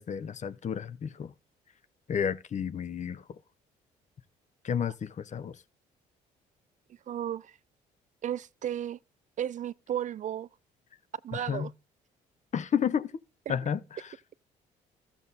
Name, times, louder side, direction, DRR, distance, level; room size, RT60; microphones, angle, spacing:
voice 1, 0.0-1.3 2.1-3.2 4.6-5.5 11.5-11.7 12.5-13.1 13.5-13.8, left 7 dB, 45° left, 0.9 m, -31 dB
voice 2, 7.1-7.6 8.2-9.0 9.4-10.5 11.2-11.7, right 10 dB, 50° right, 0.4 m, -34 dB
13.0 x 7.2 x 4.1 m
supercardioid pair, 80°, 17 cm